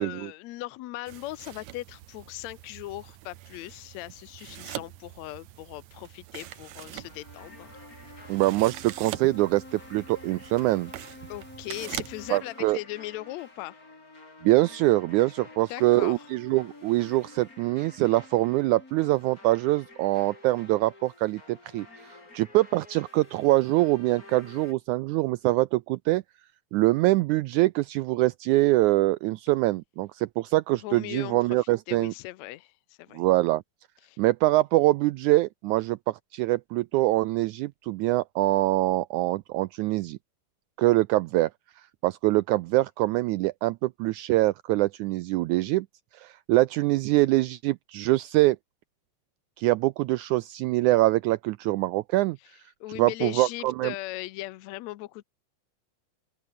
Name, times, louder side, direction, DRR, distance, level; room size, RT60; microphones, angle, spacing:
voice 1, 0.0-7.7 11.3-13.8 15.7-16.3 18.0-18.2 30.8-33.2 34.0-34.2 52.4-52.5 52.8-55.2, left 17 dB, 75° left, 1.7 m, -39 dB
sound 1, 1.1-12.4, right 14 dB, 70° right, 2.0 m, -43 dB
sound 2, 6.4-24.7, left 2 dB, 25° left, 5.1 m, -49 dB
voice 2, 8.3-10.9 12.3-12.8 14.4-26.2 26.7-32.1 33.1-33.6 34.2-40.2 40.8-41.5 42.0-45.9 46.1-48.6 49.6-52.4 53.0-53.9, right 18 dB, 85° right, 1.7 m, -24 dB
open air
omnidirectional pair, 4.0 m